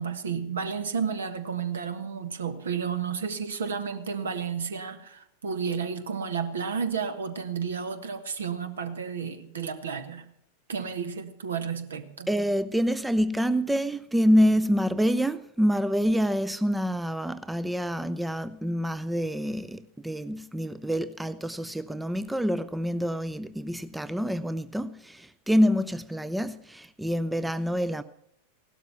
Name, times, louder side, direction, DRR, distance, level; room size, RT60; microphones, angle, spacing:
voice 1, 0.0-10.3 10.7-12.3, right 6 dB, 65° right, 1.4 m, -32 dB
voice 2, 12.3-28.0, equal, 5° right, 0.6 m, -26 dB
16.5 x 12.5 x 5.8 m
figure-of-eight pair, 90°, 0 cm